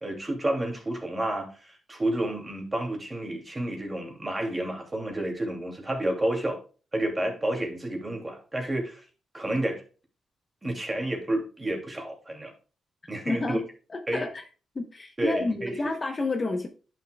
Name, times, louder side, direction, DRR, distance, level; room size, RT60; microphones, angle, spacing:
voice 1, 0.0-6.6 6.9-9.0 9.3-9.8 10.6-12.5 13.1-13.6 14.1-14.2 15.2-15.7, right 1 dB, 20° right, 2.5 m, -30 dB
voice 2, 13.2-13.6 13.9-14.4 14.7-16.7, left 2 dB, 30° left, 0.9 m, -29 dB
10.5 x 6.4 x 2.3 m
cardioid pair, 100°, 0 cm